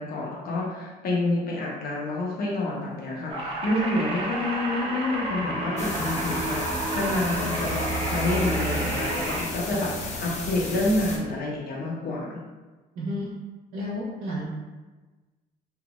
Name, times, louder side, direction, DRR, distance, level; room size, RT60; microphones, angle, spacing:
voice 1, 0.0-7.8 8.1-12.4, left 2 dB, 65° left, -4 dB, 1.0 m, -28 dB
sound 1, 3.3-9.4, right 2 dB, 35° right, 0.9 m, -31 dB
sound 2, 5.2-9.3, equal, 10° left, 0.4 m, -33 dB
sound 3, 5.8-11.2, left 2 dB, 45° left, 0.7 m, -34 dB
voice 2, 12.9-13.3 13.7-14.5, left 1 dB, 70° right, -7 dB, 1.1 m, -31 dB
3.9 x 2.7 x 2.4 m, 1.2 s
cardioid pair, 110°, 17 cm